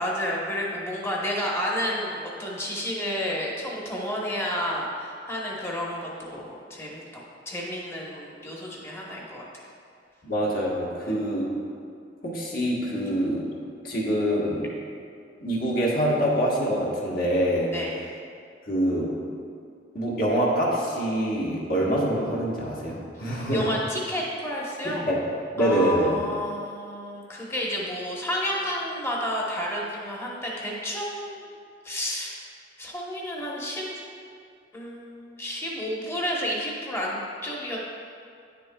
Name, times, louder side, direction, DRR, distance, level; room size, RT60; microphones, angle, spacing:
voice 1, 0.0-9.7 11.0-11.2 17.7-18.0 23.5-25.0 25.6-31.5 31.8-32.4 32.8-34.0 34.7-37.8, equal, 15° left, -4 dB, 1.1 m, -31 dB
voice 2, 10.2-11.5 12.2-13.4 13.8-14.6 15.4-17.7 18.7-19.1 19.9-23.6 25.0-25.2 25.6-26.2, equal, 55° left, -4 dB, 1.4 m, -25 dB
9.9 x 6.7 x 2.3 m, 2.3 s
head